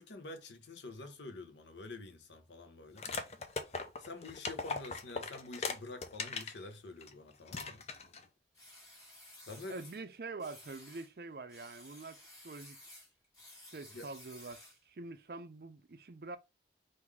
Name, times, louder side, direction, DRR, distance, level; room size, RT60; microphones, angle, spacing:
voice 1, 0.0-3.1 4.0-7.9 9.5-9.8 13.9-14.1, left 2 dB, 90° left, 0.8 m, -47 dB
sound 1, 3.0-6.6 7.0-7.1 7.5-8.2, left 4 dB, 35° left, 0.5 m, -39 dB
sound 2, 8.5-10.0 10.4-11.1 11.5-14.9, left 1 dB, 20° left, 1.6 m, -55 dB
voice 2, 9.7-12.2 12.4-12.8 13.7-16.4, right 3 dB, 55° right, 0.5 m, -45 dB
3.7 x 2.6 x 4.6 m
head